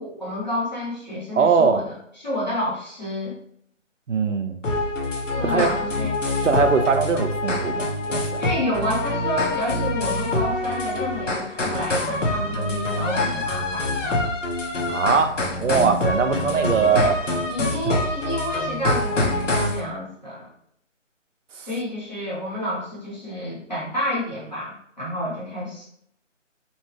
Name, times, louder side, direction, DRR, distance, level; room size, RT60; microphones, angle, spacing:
voice 1, 0.0-1.9 2.2-3.4 5.3-6.2 8.4-14.3 16.8-17.1 17.5-20.5 21.5-25.9, left 1 dB, 35° left, -8 dB, 0.8 m, -29 dB
voice 2, 1.3-1.8 4.1-4.6 5.4-5.7 6.4-8.4 14.9-17.1, right 5 dB, 75° right, 7 dB, 0.5 m, -21 dB
sound 1, 4.6-19.8, left 2 dB, 75° left, 0.8 m, -25 dB
2.8 x 2.2 x 3.0 m, 0.69 s
figure-of-eight pair, 175°, 38 cm